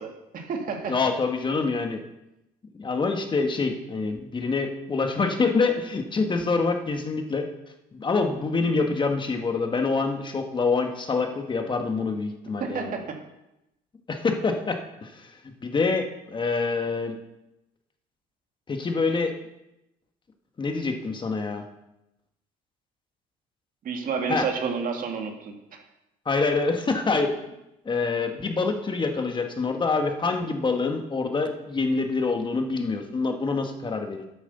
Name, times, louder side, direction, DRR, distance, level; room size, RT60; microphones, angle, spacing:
voice 1, 0.0-1.0 12.6-13.2 23.8-25.8, right 5 dB, 55° right, 3 dB, 2.0 m, -30 dB
voice 2, 0.9-2.0 2.8-7.5 7.9-12.9 14.1-15.3 15.6-17.2 18.7-19.3 20.6-21.6 24.3-24.5 26.2-27.3 27.8-34.3, left 4 dB, 30° left, 5 dB, 1.4 m, -26 dB
9.2 x 8.4 x 6.8 m, 0.90 s
cardioid pair, 110°, 17 cm